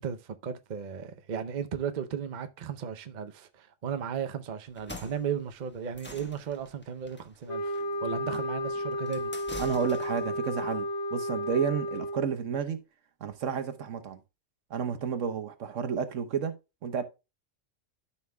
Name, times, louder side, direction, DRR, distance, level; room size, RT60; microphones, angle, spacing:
voice 1, 0.0-9.3, right 8 dB, 45° right, 0.7 m, -35 dB
sound 1, 4.7-10.3, left 1 dB, 10° left, 1.1 m, -46 dB
sound 2, 7.5-12.4, left 1 dB, 85° left, 1.6 m, -33 dB
voice 2, 9.6-12.8 13.2-14.2 14.7-16.5 16.8-17.0, right 7 dB, 80° right, 1.3 m, -31 dB
13.0 x 5.7 x 2.2 m
omnidirectional pair, 1.3 m